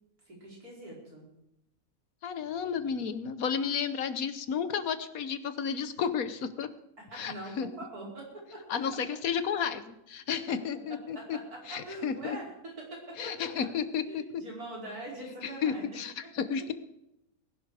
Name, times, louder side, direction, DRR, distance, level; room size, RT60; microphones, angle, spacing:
voice 1, 0.3-1.2 7.0-9.0 10.5-10.6 10.9-13.5 14.1-15.9 16.4-16.5, right 1 dB, 80° right, -3 dB, 5.5 m, -43 dB
voice 2, 2.2-6.7 7.1-7.7 8.7-11.4 11.7-12.4 13.2-14.4 15.4-16.7, left 7 dB, 70° left, 12 dB, 1.4 m, -32 dB
19.5 x 11.5 x 4.9 m, 0.83 s
omnidirectional pair, 1.6 m